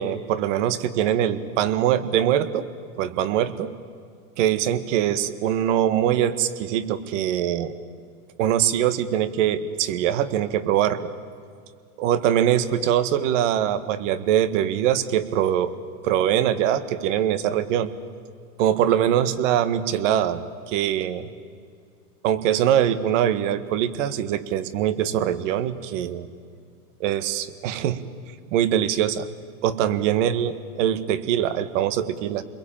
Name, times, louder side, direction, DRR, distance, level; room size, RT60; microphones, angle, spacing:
voice 1, 0.0-2.7 3.0-3.7 4.4-7.7 8.4-11.1 12.0-15.7 16.0-17.9 18.6-21.3 22.2-26.3 27.0-28.1 28.5-29.3 29.6-32.4, right 10 dB, 50° right, 13 dB, 1.8 m, -23 dB
29.0 x 22.0 x 8.9 m, 2.2 s
hypercardioid pair, 135°, 46 cm